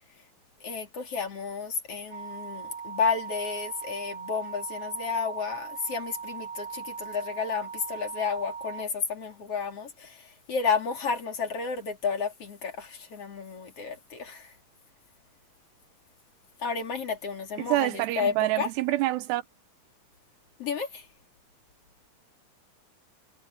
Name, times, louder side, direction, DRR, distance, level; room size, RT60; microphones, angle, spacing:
voice 1, 0.6-14.5 16.6-18.7 20.6-21.1, left 5 dB, 40° left, 3.7 m, -31 dB
sound 1, 2.1-8.8, right 6 dB, 45° right, 1.6 m, -39 dB
voice 2, 17.6-19.4, right 16 dB, 85° right, 3.3 m, -26 dB
omnidirectional pair, 4.7 m